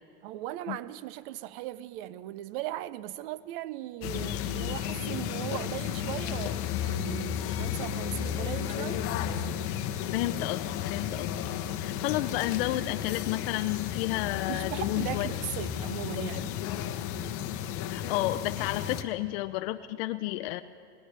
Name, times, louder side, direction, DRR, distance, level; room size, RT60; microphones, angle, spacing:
voice 1, 0.2-9.1 14.5-16.6, right 13 dB, 50° right, 0.5 m, -38 dB
sound 1, 4.0-19.0, left 10 dB, 40° left, 0.9 m, -33 dB
voice 2, 10.1-11.3 11.8-15.3 16.2-16.4 17.9-20.6, left 16 dB, 60° left, 0.5 m, -31 dB
19.5 x 18.0 x 3.3 m
supercardioid pair, 140°, 34 cm